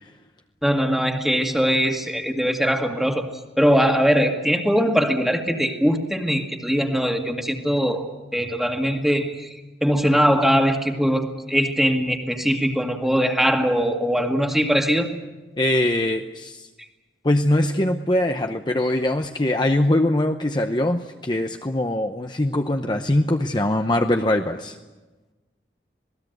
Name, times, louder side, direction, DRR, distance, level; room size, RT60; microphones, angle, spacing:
voice 1, 0.6-3.3 3.6-15.1, equal, ahead, 3 dB, 1.9 m, -21 dB
voice 2, 15.6-16.7 17.2-24.8, left 1 dB, 25° left, 5 dB, 0.8 m, -22 dB
27.0 x 19.0 x 8.0 m, 1.2 s
head